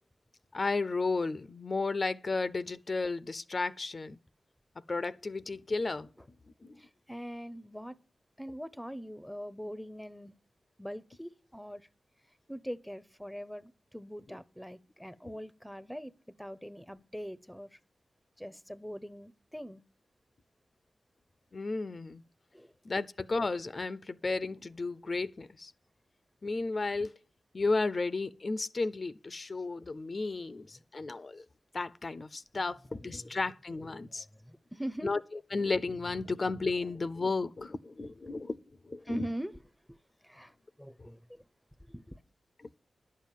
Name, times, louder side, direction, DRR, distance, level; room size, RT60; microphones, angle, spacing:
voice 1, 0.5-4.2 4.9-6.1 6.6-6.8 21.5-22.2 22.8-25.7 26.4-27.1 27.5-31.4 31.7-34.3 35.0-35.2 35.5-38.6 38.9-39.3 41.0-41.1, left 3 dB, 45° left, 0.5 m, -33 dB
voice 2, 6.8-8.0 8.4-10.3 10.8-11.9 12.5-16.1 16.4-17.8 18.4-19.8 22.5-22.7 32.6-33.4 33.8-35.1 39.0-39.6 39.9-40.0 40.2-41.4 41.8-42.2, equal, ahead, 0.6 m, -42 dB
11.0 x 7.5 x 7.2 m
cardioid pair, 65°, 0 cm